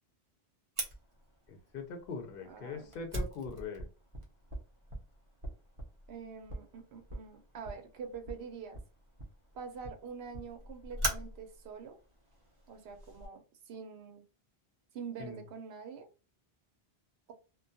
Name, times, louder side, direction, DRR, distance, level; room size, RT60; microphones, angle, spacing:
Fire, 0.8-13.3, right 1 dB, 35° right, 0.6 m, -43 dB
voice 1, 1.5-3.9 15.2-15.4, left 4 dB, 65° left, 4 dB, 0.7 m, -42 dB
voice 2, 2.5-2.9 6.1-8.8 9.5-12.0 12.7-14.2 14.9-16.1, right 6 dB, 80° right, 5 dB, 0.9 m, -45 dB
2.2 x 2.1 x 2.6 m, 0.32 s
omnidirectional pair, 1.0 m